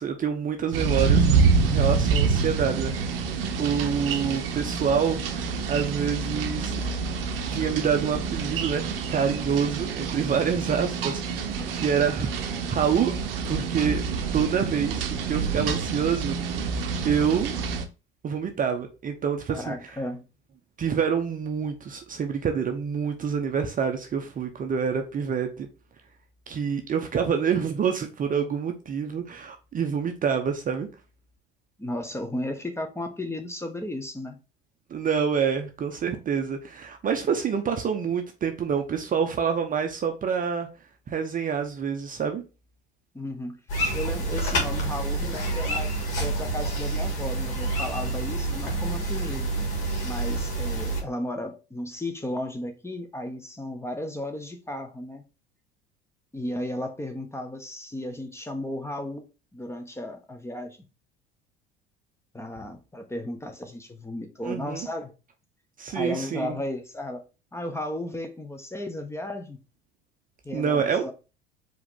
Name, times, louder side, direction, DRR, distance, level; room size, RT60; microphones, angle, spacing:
voice 1, 0.0-3.2 3.6-6.8 7.5-13.1 13.4-14.0 14.3-16.6 17.0-17.6 18.2-19.7 20.8-25.7 26.5-30.9 34.9-40.7 41.1-42.4 64.4-64.9 65.8-66.6 70.5-71.0, right 7 dB, 30° right, 0.7 m, -27 dB
sound 1, 0.7-17.8, right 5 dB, 70° right, 0.7 m, -27 dB
voice 2, 19.5-20.2 31.8-34.4 43.1-43.6 43.9-45.9 46.2-49.5 50.0-55.2 56.3-60.8 62.3-65.1 65.9-67.2 67.5-69.6 70.4-71.1, left 1 dB, 10° left, 0.9 m, -34 dB
sound 2, 43.7-51.0, right 2 dB, 55° left, 1.9 m, -28 dB
4.8 x 3.0 x 3.7 m
figure-of-eight pair, 65°, 30 cm